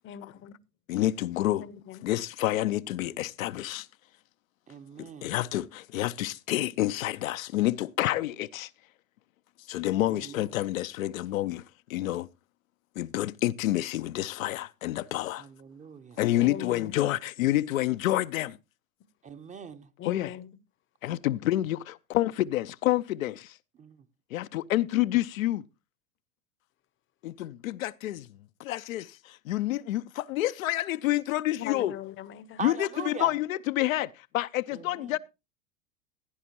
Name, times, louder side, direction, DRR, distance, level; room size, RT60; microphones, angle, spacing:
voice 1, 0.0-0.6 1.6-2.1 16.4-17.0 20.0-20.5 31.6-32.6, left 11 dB, 30° left, 0.8 m, -40 dB
voice 2, 0.9-1.7 2.0-3.9 5.0-8.7 9.7-11.6 11.9-12.3 13.0-15.4 16.2-18.6 20.1-20.4 21.0-23.5 24.3-25.6 27.2-28.3 28.6-31.9 32.6-35.2, left 15 dB, 70° left, 0.6 m, -28 dB
voice 3, 4.7-5.3 10.1-10.5 15.4-16.7 19.2-19.9 23.8-24.0 32.6-33.4 34.7-35.2, right 5 dB, 15° right, 0.8 m, -41 dB
16.0 x 9.8 x 2.9 m
hypercardioid pair, 90°, 42 cm